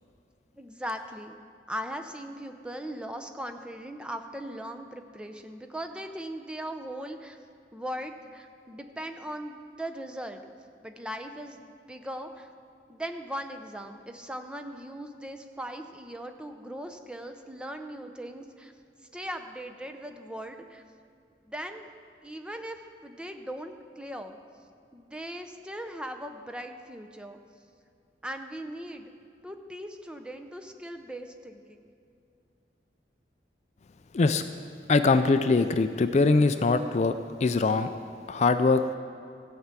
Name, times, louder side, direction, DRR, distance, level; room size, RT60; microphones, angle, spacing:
voice 1, 0.5-1.4 1.7-7.4 7.7-10.4 10.8-12.5 12.9-18.7 19.1-20.8 21.5-21.9 22.2-24.4 24.9-27.4 28.2-29.1 29.4-31.9, equal, 5° right, 6 dB, 0.6 m, -39 dB
voice 2, 34.9-37.1 37.4-37.9 38.3-38.8, left 3 dB, 40° left, 9 dB, 0.4 m, -22 dB
14.5 x 5.8 x 8.2 m, 2.4 s
head